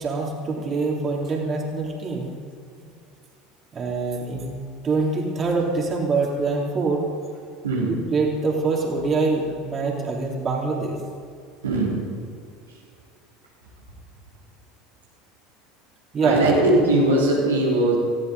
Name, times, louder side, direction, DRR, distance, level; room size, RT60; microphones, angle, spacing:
voice 1, 0.0-2.4 2.8-2.9 3.7-4.5 4.8-7.0 8.1-11.0 16.1-16.4, right 3 dB, 35° right, -1 dB, 3.3 m, -24 dB
voice 2, 7.6-8.0 11.6-12.0 16.2-17.9, right 2 dB, 85° right, -4 dB, 3.3 m, -20 dB
19.5 x 14.5 x 4.1 m, 2.4 s
hypercardioid pair, 75°, 0 cm